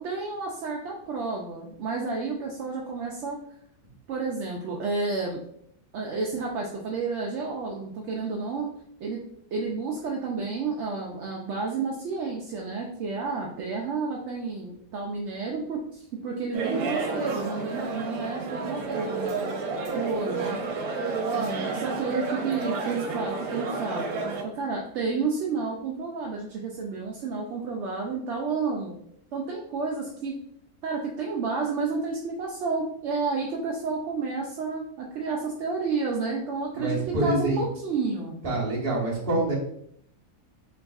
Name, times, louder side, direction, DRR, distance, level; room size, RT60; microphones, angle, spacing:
voice 1, 0.0-3.4 4.1-5.4 5.9-8.7 9.0-9.2 9.5-19.5 19.9-20.6 21.3-24.1 24.4-29.0 29.3-30.3 30.8-38.3, right 4 dB, 65° right, -1 dB, 0.8 m, -31 dB
sound 1, 16.5-24.4, right 3 dB, 90° right, 1.2 m, -31 dB
voice 2, 36.7-37.6 38.4-39.5, right 2 dB, 40° right, -4 dB, 1.3 m, -26 dB
3.9 x 3.5 x 2.3 m, 0.69 s
omnidirectional pair, 1.5 m